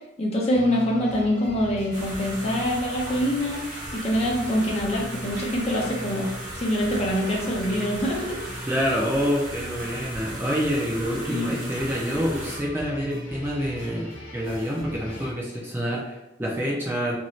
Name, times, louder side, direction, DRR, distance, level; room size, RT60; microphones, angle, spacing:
voice 1, 0.2-8.4 11.3-11.5, equal, 35° left, -2 dB, 0.7 m, -25 dB
sound 1, 0.5-15.3, equal, 50° left, 1.1 m, -40 dB
sound 2, 1.9-12.6, right 1 dB, 45° right, 1.3 m, -38 dB
voice 2, 8.6-17.2, equal, 10° right, -3 dB, 0.4 m, -27 dB
3.0 x 2.6 x 3.0 m, 0.92 s
head